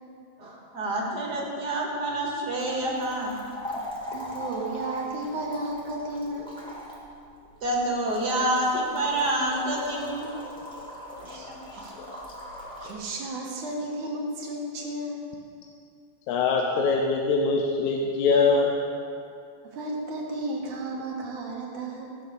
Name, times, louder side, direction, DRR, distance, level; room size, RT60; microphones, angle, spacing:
voice 1, 0.4-3.3 7.6-10.3 11.2-11.8, right 1 dB, 35° right, -2 dB, 2.2 m, -28 dB
sound 1, 2.6-12.9, left 1 dB, ahead, 1.7 m, -40 dB
voice 2, 4.1-6.5 11.2-11.9 12.6-15.2 19.7-22.2, right 2 dB, 85° right, -1 dB, 3.2 m, -33 dB
voice 3, 16.3-18.7, left 4 dB, 80° left, 1 dB, 2.2 m, -23 dB
16.0 x 6.5 x 6.8 m, 2.4 s
omnidirectional pair, 3.4 m